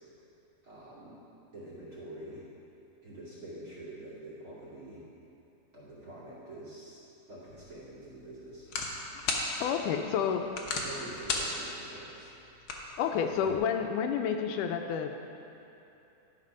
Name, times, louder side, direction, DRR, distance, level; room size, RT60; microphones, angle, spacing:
voice 1, 0.6-1.2 1.5-2.5 3.0-5.0 5.7-7.0 7.3-8.7 10.8-12.1, right 1 dB, 30° right, -7 dB, 2.4 m, -46 dB
sound 1, 7.5-13.6, left 3 dB, 70° left, 1.2 m, -38 dB
voice 2, 9.6-10.4 13.0-15.2, left 7 dB, 85° left, 5 dB, 2.1 m, -30 dB
11.5 x 6.0 x 5.3 m, 2.9 s
omnidirectional pair, 3.6 m